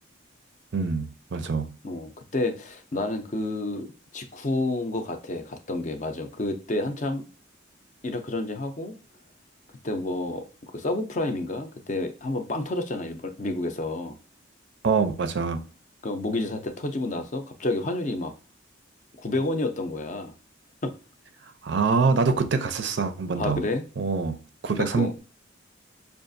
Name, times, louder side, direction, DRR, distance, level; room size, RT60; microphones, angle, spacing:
voice 1, 0.7-1.8 14.8-15.6 21.6-23.6 24.0-24.4 24.6-25.2, right 4 dB, 60° right, 0.4 m, -25 dB
voice 2, 1.8-3.9 4.1-7.3 8.0-8.9 9.8-10.4 10.7-14.2 16.0-18.3 19.2-20.3 20.8-20.9 23.4-23.8 24.8-25.1, left 2 dB, 40° left, 0.5 m, -29 dB
5.5 x 2.4 x 2.6 m
head